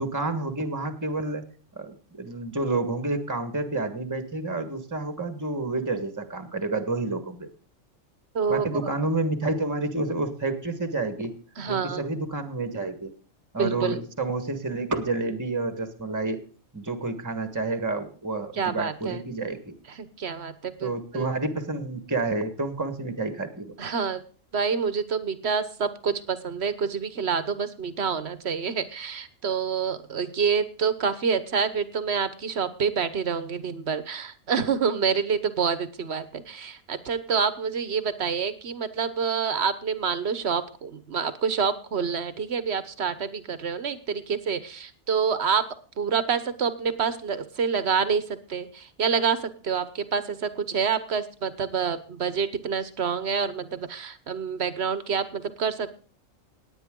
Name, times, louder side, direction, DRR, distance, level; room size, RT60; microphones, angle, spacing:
voice 1, 0.0-1.5 1.7-7.5 8.5-11.3 11.7-13.1 13.5-16.4 16.7-19.7 20.8-23.7, right 2 dB, 15° right, 9 dB, 1.5 m, -29 dB
voice 2, 11.6-12.0 13.6-14.0 18.5-19.2 19.9-21.3 23.8-24.2 24.5-45.7 46.0-55.9, right 6 dB, 55° right, 13 dB, 1.4 m, -27 dB
18.0 x 9.6 x 3.8 m, 0.41 s
omnidirectional pair, 1.4 m